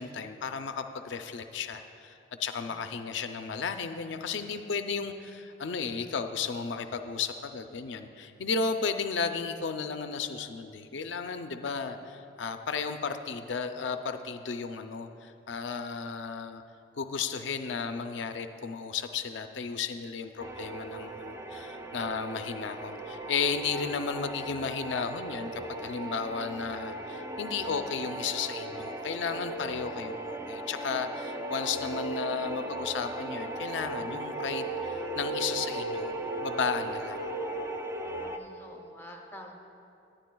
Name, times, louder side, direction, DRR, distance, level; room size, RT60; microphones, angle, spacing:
voice 1, 0.0-16.6 17.0-36.1 36.4-37.3, left 5 dB, 70° left, 7 dB, 0.5 m, -34 dB
voice 2, 2.7-3.0 38.1-39.5, equal, 10° left, 1 dB, 0.7 m, -49 dB
sound 1, 20.4-38.4, right 2 dB, 15° right, 0.3 m, -37 dB
18.0 x 9.8 x 2.3 m, 2.8 s
head